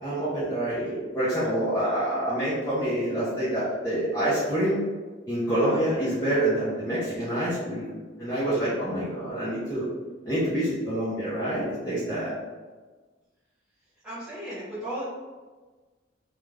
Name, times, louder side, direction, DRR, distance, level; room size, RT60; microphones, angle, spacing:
voice 1, 0.0-4.8 5.3-9.9 10.3-12.3, right 1 dB, 15° left, -13 dB, 0.6 m, -27 dB
voice 2, 14.0-15.0, right 1 dB, 5° right, -11 dB, 1.0 m, -35 dB
2.4 x 2.2 x 3.2 m, 1.3 s
head